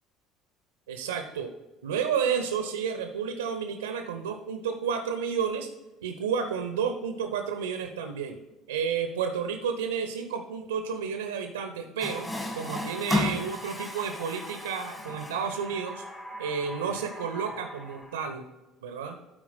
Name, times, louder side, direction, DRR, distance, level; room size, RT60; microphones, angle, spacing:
voice 1, 0.9-1.5 1.8-5.7 6.0-8.4 8.7-12.3 12.5-16.0 16.4-18.4 18.8-19.2, right 6 dB, 75° right, 6 dB, 0.7 m, -31 dB
Water tap faucet, 12.0-18.3, left 1 dB, 15° left, 1.7 m, -35 dB
12.5 x 4.5 x 4.1 m, 1.1 s
figure-of-eight pair, 60°, 0 cm